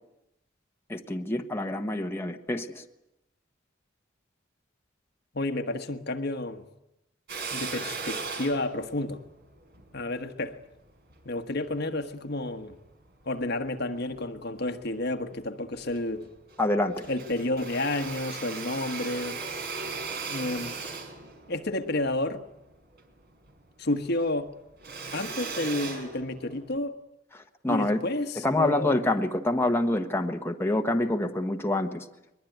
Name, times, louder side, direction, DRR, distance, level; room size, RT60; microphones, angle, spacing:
voice 1, 0.9-2.8 16.6-17.0 27.3-28.0 28.3-32.1, left 1 dB, 10° left, 1.3 m, -27 dB
voice 2, 5.3-6.6 7.5-9.2 9.9-10.6 11.2-12.8 13.2-16.3 17.1-19.4 20.3-20.8 21.5-22.4 23.8-24.5 25.1-27.0 27.7-29.0, left 2 dB, 55° left, 1.4 m, -30 dB
Drill, 7.3-11.8 12.4-13.6 14.0-14.9 15.3-15.4 15.7-16.7 16.9-23.6 23.9-26.8, right 4 dB, 55° right, 4.5 m, -38 dB
22.0 x 22.0 x 9.3 m
head